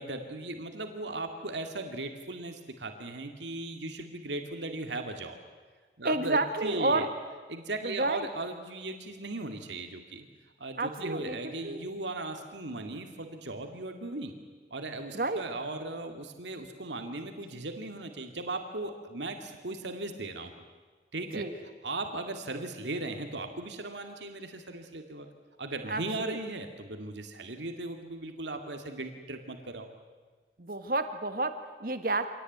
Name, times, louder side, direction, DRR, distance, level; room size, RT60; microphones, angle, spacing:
voice 1, 0.0-5.4 6.0-7.1 7.5-10.3 10.6-14.4 14.7-20.5 21.1-21.5 21.8-25.3 25.6-29.9, right 2 dB, 85° right, 5 dB, 2.2 m, -37 dB
voice 2, 6.0-7.1 7.8-8.3 10.8-11.4 11.6-11.8 15.1-15.4 21.3-21.5 25.9-26.4 30.6-32.3, right 2 dB, 55° right, 9 dB, 1.7 m, -30 dB
26.0 x 18.5 x 9.4 m, 1.4 s
head